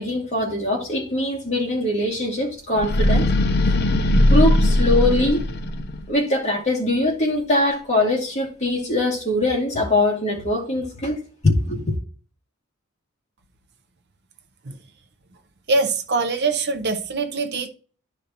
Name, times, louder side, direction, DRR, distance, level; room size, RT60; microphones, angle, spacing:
voice 1, 0.0-3.3 4.3-5.4 6.1-11.9, left 1 dB, 35° left, 2.2 m, -22 dB
sound 1, 2.7-6.0, left 1 dB, 50° left, 0.6 m, -19 dB
voice 2, 15.7-17.7, right 3 dB, 50° right, 0.7 m, -23 dB
12.5 x 5.1 x 2.9 m
head